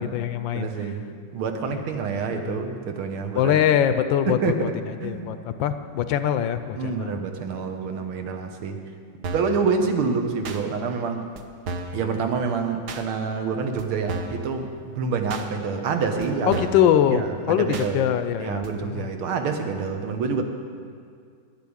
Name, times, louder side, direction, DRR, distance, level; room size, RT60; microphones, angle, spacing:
voice 1, 0.0-0.7 1.6-1.8 2.3-2.6 3.3-4.7 5.0-7.1 16.5-17.2 17.5-19.1, left 10 dB, 75° left, 10 dB, 1.2 m, -23 dB
voice 2, 0.5-3.6 4.3-4.7 5.0-5.4 6.8-8.8 9.3-11.3 11.9-16.6 17.1-18.0 18.4-20.4, right 5 dB, 90° right, 5 dB, 1.9 m, -27 dB
sound 1, 9.2-9.6 10.4-10.6 11.4-11.5 11.7-12.0 12.9-13.0 13.8-13.9 14.1-14.4 15.3-15.5 16.2-16.3 16.5-16.9 17.7-17.9 18.6-18.7, right 3 dB, 60° right, 1.3 m, -32 dB
11.5 x 8.3 x 8.7 m, 2.2 s
omnidirectional pair, 2.2 m